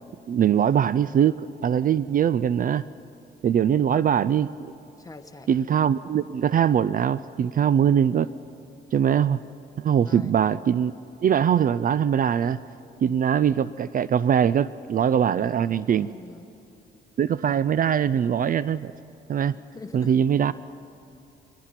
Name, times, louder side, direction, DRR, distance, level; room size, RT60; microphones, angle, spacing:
voice 1, 0.3-2.9 3.4-4.7 5.5-8.3 8.9-9.4 9.8-10.9 11.2-12.6 13.0-16.1 17.2-18.9 19.3-19.5 19.9-20.5, right 8 dB, 45° right, 17 dB, 0.4 m, -22 dB
voice 2, 5.0-5.5 10.0-10.3 15.9-16.5 19.5-20.1, left 3 dB, 15° left, 6 dB, 1.5 m, -44 dB
23.0 x 20.0 x 5.9 m, 2.9 s
cardioid pair, 90°, 20 cm